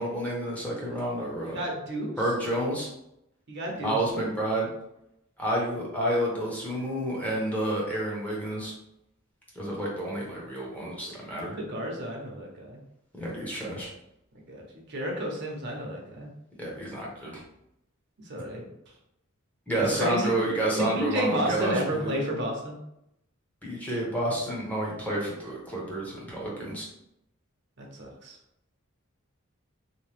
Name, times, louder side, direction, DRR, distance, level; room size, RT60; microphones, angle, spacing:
voice 1, 0.0-1.6 2.2-2.9 3.8-4.7 5.4-8.7 9.5-11.6 13.1-13.9 16.6-17.4 19.7-22.2 23.6-26.9, right 1 dB, 5° left, -4 dB, 0.7 m, -30 dB
voice 2, 1.4-2.1 3.5-4.0 11.4-12.8 14.5-14.6 14.9-16.3 18.2-18.7 19.8-20.3 20.8-22.8 27.8-28.4, right 1 dB, 55° right, -1 dB, 0.7 m, -31 dB
2.8 x 2.2 x 3.2 m, 0.81 s
head